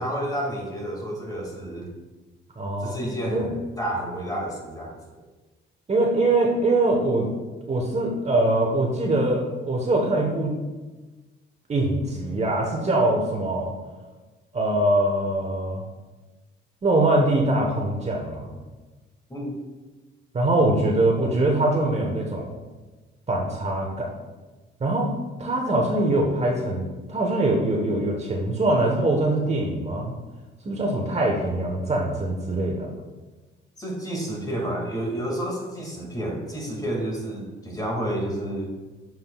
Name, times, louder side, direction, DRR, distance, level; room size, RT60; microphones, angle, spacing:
voice 1, 0.0-1.9 2.8-5.0 19.3-19.5 33.8-38.7, right 1 dB, 20° left, -2 dB, 2.1 m, -30 dB
voice 2, 2.6-3.0 3.3-3.5 5.9-7.3 7.7-10.5 11.7-13.7 14.5-15.8 16.8-18.5 20.3-22.5 23.3-24.1 24.8-25.1 25.4-30.1 30.6-32.9, right 2 dB, 35° right, 0 dB, 1.2 m, -23 dB
7.6 x 7.4 x 2.4 m, 1.2 s
cardioid pair, 90°, 20 cm